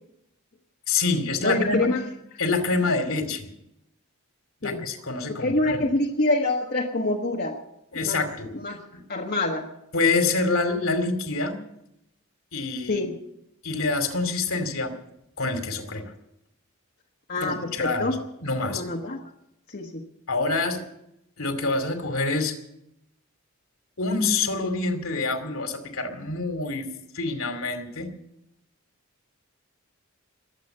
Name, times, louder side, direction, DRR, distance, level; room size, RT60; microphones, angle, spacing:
voice 1, 0.9-1.9 2.4-3.5 4.6-5.9 7.9-8.5 9.9-11.6 12.5-13.0 13.6-14.9 15.4-16.1 17.4-18.8 20.3-20.8 21.4-22.5 24.0-26.9 27.1-28.1, left 3 dB, 70° left, 7 dB, 2.5 m, -26 dB
voice 2, 1.4-2.0 4.6-4.8 5.3-7.5 7.9-8.2 8.6-8.8 9.1-9.7 12.9-13.1 17.3-18.2 18.6-19.2 19.7-20.0, left 2 dB, 45° left, 0 dB, 1.4 m, -26 dB
22.0 x 8.2 x 7.9 m, 0.82 s
head